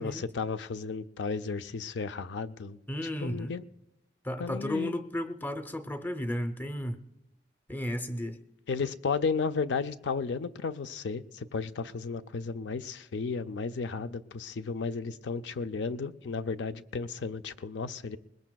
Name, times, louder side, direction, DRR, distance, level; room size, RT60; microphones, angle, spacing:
voice 1, 0.0-2.8 3.2-3.6 4.4-4.9 8.7-18.2, left 5 dB, 80° left, 0.4 m, -33 dB
voice 2, 2.9-3.5 4.2-7.0 7.7-8.4, left 1 dB, 10° left, 0.6 m, -33 dB
21.5 x 20.0 x 2.3 m
head